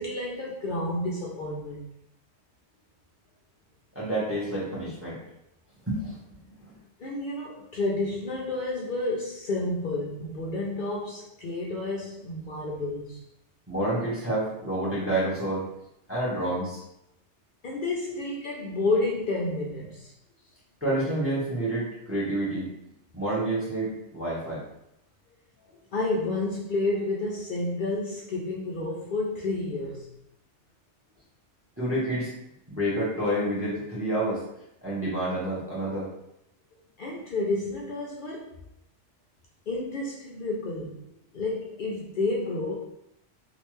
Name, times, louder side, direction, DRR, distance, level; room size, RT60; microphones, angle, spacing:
voice 1, 0.0-1.9 7.0-13.2 17.6-20.1 25.9-30.1 37.0-38.5 39.7-42.7, left 2 dB, 55° left, -3 dB, 0.6 m, -30 dB
voice 2, 3.9-5.2 5.9-6.2 6.6-6.7 13.7-15.7 16.1-16.8 18.1-18.2 20.8-22.7 23.1-24.6 31.8-32.3 32.7-34.4 34.8-36.1, right 1 dB, 10° right, -7 dB, 1.0 m, -28 dB
3.2 x 2.5 x 3.0 m, 0.80 s
omnidirectional pair, 1.2 m